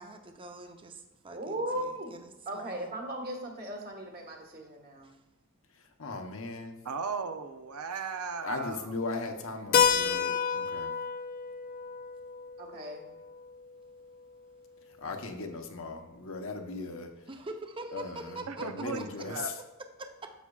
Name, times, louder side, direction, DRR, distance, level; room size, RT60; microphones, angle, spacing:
voice 1, 0.0-2.9 5.0-5.2 17.3-19.3 20.0-20.3, right 2 dB, 25° right, 5 dB, 0.6 m, -44 dB
voice 2, 1.3-2.1 2.4-5.1 12.6-13.1, right 1 dB, 45° right, 1 dB, 1.5 m, -37 dB
voice 3, 6.0-6.8 8.4-10.9 15.0-17.1 17.9-19.6, left 3 dB, 65° left, 4 dB, 0.9 m, -38 dB
voice 4, 6.8-8.9 18.5-19.5, right 5 dB, 90° right, 8 dB, 0.6 m, -36 dB
Keyboard (musical), 9.7-14.2, left 7 dB, 40° left, 0.3 m, -30 dB
10.0 x 7.3 x 2.4 m, 1.0 s
head